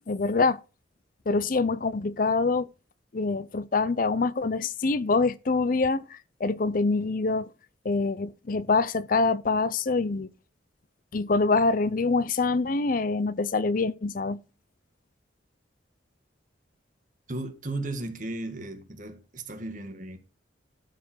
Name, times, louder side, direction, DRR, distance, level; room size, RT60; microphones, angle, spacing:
voice 1, 0.1-0.6 1.3-2.7 3.1-7.5 7.8-10.3 11.1-14.4, left 3 dB, 45° left, 0.5 m, -25 dB
voice 2, 17.3-20.2, right 2 dB, 40° right, 1.8 m, -35 dB
13.0 x 5.1 x 6.1 m
head